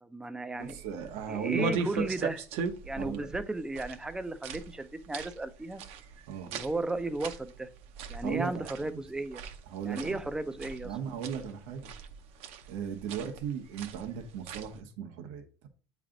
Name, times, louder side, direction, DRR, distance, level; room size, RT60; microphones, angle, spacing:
voice 1, 0.0-0.8 1.3-2.4 2.8-5.8 6.5-7.7 8.1-9.4 9.9-10.9, right 2 dB, 5° right, 0.4 m, -34 dB
sound 1, 0.6-14.8, right 4 dB, 60° right, 0.7 m, -40 dB
voice 2, 0.6-2.1 2.9-3.3 6.3-6.5 8.2-9.0 9.7-10.2 10.8-11.9 12.7-15.7, right 8 dB, 85° right, 1.1 m, -37 dB
8.7 x 3.3 x 3.8 m
cardioid pair, 165°, 12 cm